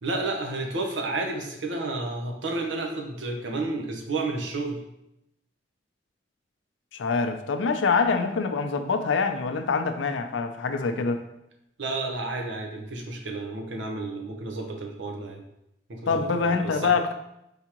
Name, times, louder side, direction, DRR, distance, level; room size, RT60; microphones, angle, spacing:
voice 1, 0.0-4.8 11.8-15.4 15.9-16.9, right 2 dB, 80° right, 2 dB, 0.8 m, -31 dB
voice 2, 6.9-11.2 16.1-17.1, left 4 dB, 85° left, 7 dB, 0.5 m, -25 dB
4.8 x 3.6 x 2.9 m, 0.84 s
head